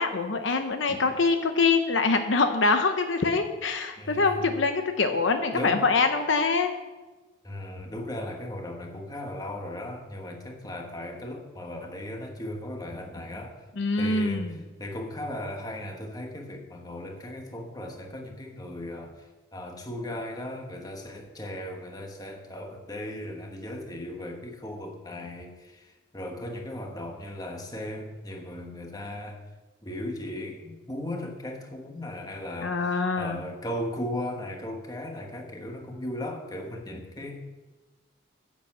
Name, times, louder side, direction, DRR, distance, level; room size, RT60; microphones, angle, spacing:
voice 1, 0.0-6.7 13.8-14.6 32.6-33.4, left 4 dB, 65° left, 7 dB, 0.8 m, -24 dB
voice 2, 4.0-4.5 5.1-5.2 5.5-5.8 7.4-13.6 14.0-29.4 29.8-37.4, left 1 dB, 20° left, 2 dB, 1.4 m, -37 dB
10.5 x 7.0 x 7.4 m, 1.2 s
head